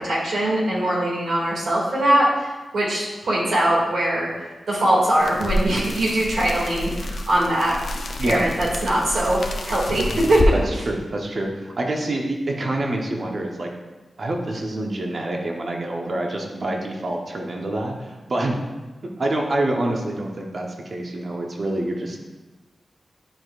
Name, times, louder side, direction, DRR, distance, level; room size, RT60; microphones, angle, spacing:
voice 1, 0.0-4.3 4.7-7.7 8.2-10.5, right 1 dB, 85° right, -5 dB, 2.3 m, -21 dB
sound 1, 5.2-10.5, left 1 dB, 70° left, 0.7 m, -29 dB
voice 2, 10.7-13.7 14.2-18.6 19.2-22.2, right 1 dB, 55° right, 1 dB, 1.0 m, -26 dB
10.5 x 4.7 x 2.5 m, 1.2 s
cardioid pair, 65°, 0 cm